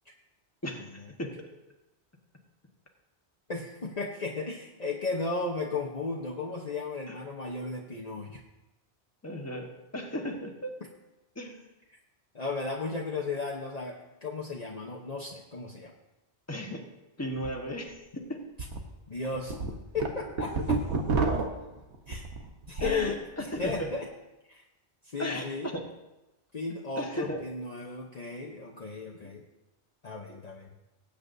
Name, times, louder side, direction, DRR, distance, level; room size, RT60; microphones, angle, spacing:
voice 1, 0.6-1.3 7.1-7.2 9.2-10.7 11.3-11.7 16.5-16.8 17.2-18.4 22.8-23.9 25.2-25.9 27.0-27.4 29.2-29.3, equal, 15° left, 1 dB, 1.4 m, -36 dB
voice 2, 3.5-8.4 12.3-15.9 19.1-19.5 19.9-20.8 22.1-22.2 22.7-24.1 24.5-24.6 25.0-25.7 26.5-29.4 30.0-30.7, left 3 dB, 40° left, -1 dB, 1.0 m, -35 dB
sound 1, 17.3-17.5 17.9-18.0 18.6-18.8 19.2-23.1 23.4-23.8, right 3 dB, 90° right, 1.4 m, -30 dB
19.5 x 8.6 x 2.7 m, 1.0 s
omnidirectional pair, 1.1 m